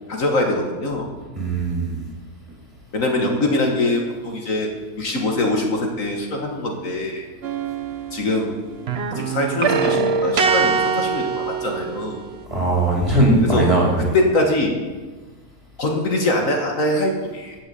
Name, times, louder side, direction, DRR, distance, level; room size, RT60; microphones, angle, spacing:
voice 1, 0.1-1.1 2.9-4.7 5.0-7.3 8.1-8.5 9.2-12.2 13.5-13.7 14.1-14.8 15.8-17.6, left 1 dB, 60° left, 2 dB, 1.9 m, -22 dB
voice 2, 1.4-2.0 12.5-14.1, right 2 dB, 20° right, -2 dB, 3.0 m, -19 dB
sound 1, 7.4-8.5 8.8-12.4, right 5 dB, 50° right, 0.9 m, -23 dB
15.5 x 6.4 x 6.9 m, 1.3 s
omnidirectional pair, 1.6 m